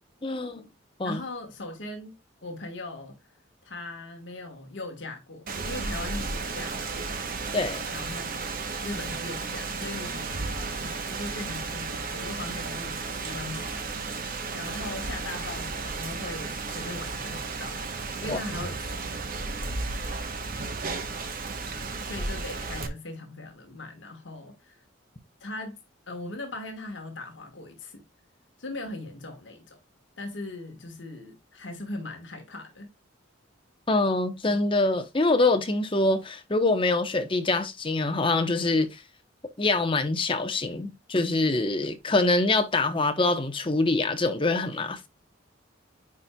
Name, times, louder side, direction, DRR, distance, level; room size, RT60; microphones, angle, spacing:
voice 1, 0.2-0.6 1.0-1.2 7.5-7.8 18.3-18.4 33.9-38.9 39.6-45.1, left 2 dB, 25° left, 0.9 m, -25 dB
voice 2, 1.0-3.1 3.6-7.2 7.9-8.5 8.8-17.8 18.2-19.2 22.0-24.8 25.4-25.8 26.1-28.0 28.6-29.8 30.2-32.9, left 2 dB, 65° left, 1.5 m, -39 dB
Rain, 5.5-22.9, right 4 dB, 45° right, 0.9 m, -33 dB
9.6 x 4.3 x 2.3 m
head